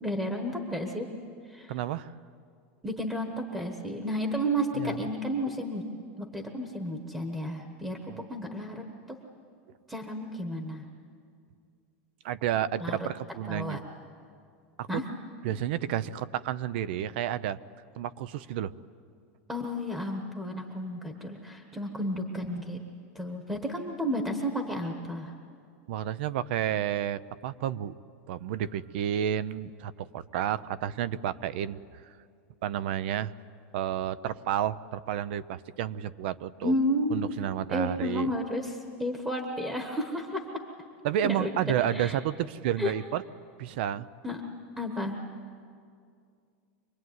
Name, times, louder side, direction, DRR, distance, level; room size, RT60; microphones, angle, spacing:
voice 1, 0.0-1.1 1.5-1.7 2.8-5.8 6.2-9.2 9.9-10.8 12.8-13.0 13.5-13.8 14.9-15.0 19.5-22.8 23.1-25.3 36.6-37.2 37.7-40.4 41.2-42.2 42.8-42.9 44.2-44.4 44.8-45.2, equal, 5° right, 3 dB, 1.3 m, -32 dB
voice 2, 1.7-2.1 4.8-5.1 8.1-8.2 12.2-13.8 14.8-15.0 15.4-17.6 18.0-18.7 25.9-27.9 28.3-31.8 32.6-33.3 33.7-36.7 37.1-38.3 41.0-43.2 43.6-44.1, right 10 dB, 50° right, 16 dB, 0.7 m, -31 dB
26.0 x 21.0 x 9.5 m, 2.3 s
supercardioid pair, 175°, 7 cm